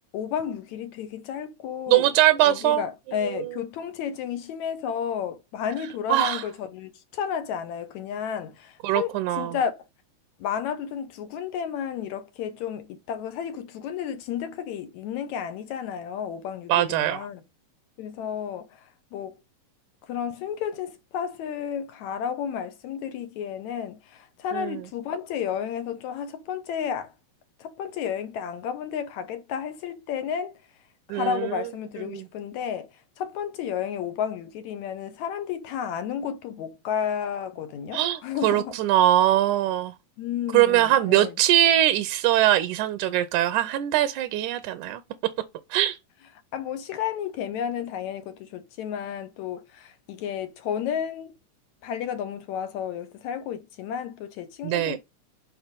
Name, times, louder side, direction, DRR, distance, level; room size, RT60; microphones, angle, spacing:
voice 1, 0.1-2.1 2.4-9.1 9.4-9.7 10.4-17.4 18.0-18.7 19.1-19.4 20.1-27.1 27.6-30.5 31.1-32.9 33.2-38.7 40.2-41.3 46.5-51.3 51.8-55.0, left 8 dB, 70° left, 2.0 m, -32 dB
voice 2, 1.9-2.8 3.2-3.5 6.1-6.4 8.8-9.6 16.7-17.2 24.5-24.8 31.1-31.6 32.0-32.3 37.9-39.9 40.5-45.0 45.7-46.0 54.6-55.0, right 13 dB, 75° right, 2.0 m, -22 dB
7.3 x 5.0 x 5.1 m
omnidirectional pair, 3.8 m